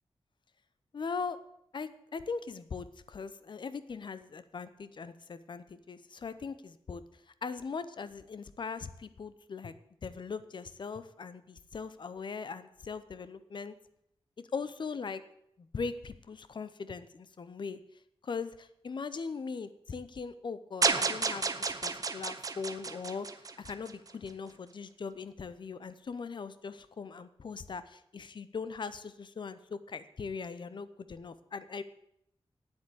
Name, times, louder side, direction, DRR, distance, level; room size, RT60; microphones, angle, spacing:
voice 1, 0.9-1.4 1.7-7.0 7.4-9.7 10.0-13.7 14.5-15.2 15.6-17.8 18.2-23.3 23.6-31.8, left 5 dB, 50° left, 13 dB, 0.7 m, -40 dB
sound 1, 20.8-24.1, right 4 dB, 35° right, 0.8 m, -31 dB
9.4 x 8.3 x 8.7 m, 0.77 s
wide cardioid pair, 150°, 10 cm